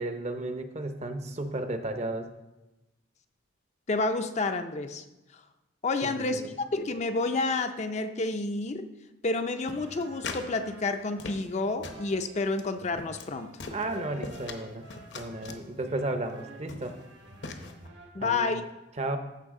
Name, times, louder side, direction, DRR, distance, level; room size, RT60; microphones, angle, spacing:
voice 1, 0.0-2.3 6.0-6.5 13.7-14.9 15.1-17.0 18.2-18.5 19.0-19.2, right 2 dB, 35° right, 8 dB, 0.7 m, -33 dB
voice 2, 3.9-5.0 5.8-8.9 9.2-13.6 18.1-18.6, left 3 dB, 35° left, 8 dB, 0.4 m, -29 dB
sound 1, 9.6-18.1, right 2 dB, 65° right, 1.3 m, -50 dB
sound 2, 9.7-10.5 10.8-11.6 11.8-12.1 12.5-12.7 12.9-13.3 13.6-14.6 14.9-15.6 16.3-16.4 16.7-17.0 17.4-17.7, left 3 dB, 60° left, 0.9 m, -40 dB
14.0 x 5.5 x 3.7 m, 1.0 s
head